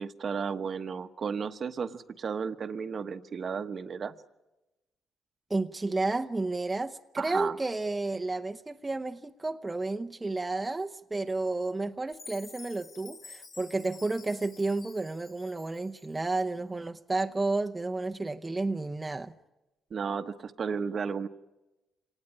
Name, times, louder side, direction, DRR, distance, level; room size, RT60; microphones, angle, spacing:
voice 1, 0.0-4.1 7.2-7.6 19.9-21.3, right 6 dB, 50° right, 1.1 m, -33 dB
voice 2, 5.5-19.3, right 3 dB, 20° right, 0.8 m, -31 dB
Chime, 12.1-16.4, left 4 dB, 55° left, 4.6 m, -50 dB
26.0 x 19.0 x 9.9 m
cardioid pair, 90°, 0 cm